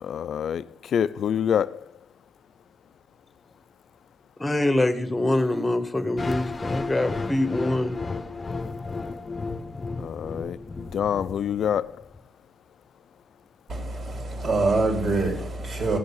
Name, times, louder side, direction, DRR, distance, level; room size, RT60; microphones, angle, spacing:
voice 1, 0.0-1.8 10.0-10.6 10.9-12.0, left 8 dB, 60° left, 0.5 m, -26 dB
voice 2, 4.4-8.3, left 1 dB, 15° left, 1.6 m, -25 dB
sound 1, 6.2-12.2, left 3 dB, 30° left, 1.0 m, -33 dB
voice 3, 13.7-16.0, right 3 dB, 50° right, 3.3 m, -25 dB
15.0 x 6.5 x 7.2 m
cardioid pair, 90°, 0 cm